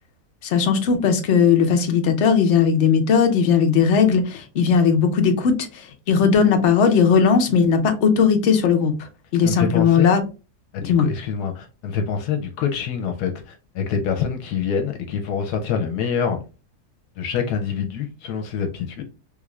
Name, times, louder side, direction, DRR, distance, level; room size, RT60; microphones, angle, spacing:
voice 1, 0.4-8.9 9.3-10.2 10.8-11.1, left 6 dB, 60° left, 0.8 m, -18 dB
voice 2, 9.4-10.1 10.7-16.4 17.2-19.0, left 7 dB, 80° left, 1.1 m, -26 dB
3.4 x 2.4 x 3.1 m
omnidirectional pair, 1.7 m